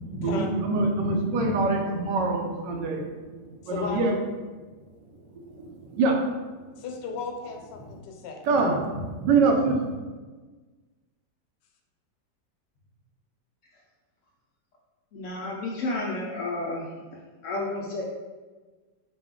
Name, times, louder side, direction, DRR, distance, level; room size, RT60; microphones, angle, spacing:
voice 1, 0.1-3.0 3.7-4.1 6.0-6.1 8.5-9.8, right 3 dB, 90° right, 2 dB, 1.3 m, -24 dB
voice 2, 3.7-4.0 6.8-8.4, left 5 dB, 85° left, 3 dB, 1.3 m, -35 dB
voice 3, 15.1-16.9 17.4-18.0, left 2 dB, 65° left, -3 dB, 0.8 m, -31 dB
4.7 x 2.2 x 3.6 m, 1.3 s
omnidirectional pair, 1.8 m